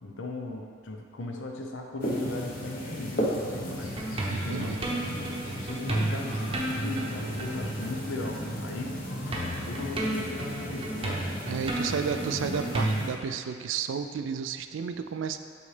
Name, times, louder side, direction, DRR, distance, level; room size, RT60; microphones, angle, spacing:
voice 1, 0.0-4.0 4.3-4.7 5.1-9.0 9.7-11.3 11.8-11.9, left 2 dB, 75° left, 2 dB, 0.7 m, -37 dB
sound 1, 2.0-13.1, equal, 50° left, 1.0 m, -36 dB
sound 2, 3.8-8.8 9.1-13.1, right 1 dB, 30° right, 0.8 m, -33 dB
voice 2, 4.3-4.8 11.5-15.4, right 6 dB, 75° right, 9 dB, 0.3 m, -32 dB
8.3 x 4.0 x 3.3 m, 2.1 s
head